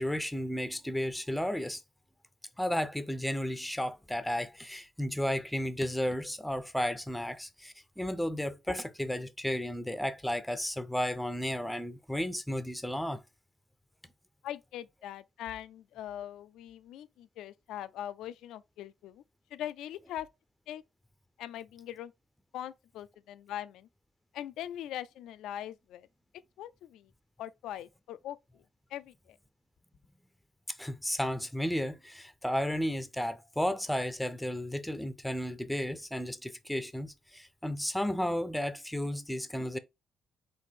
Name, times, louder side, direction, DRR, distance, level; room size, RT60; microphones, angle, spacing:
voice 1, 0.0-1.8 2.6-13.2 30.7-39.8, equal, 5° left, 0.5 m, -33 dB
voice 2, 14.4-19.2 19.5-20.3 20.7-20.8 21.4-22.1 22.5-23.9 24.3-26.1 26.6-27.1 27.4-28.6 28.9-29.4, left 11 dB, 85° left, 0.4 m, -41 dB
4.2 x 2.6 x 4.5 m
cardioid pair, 90°, 0 cm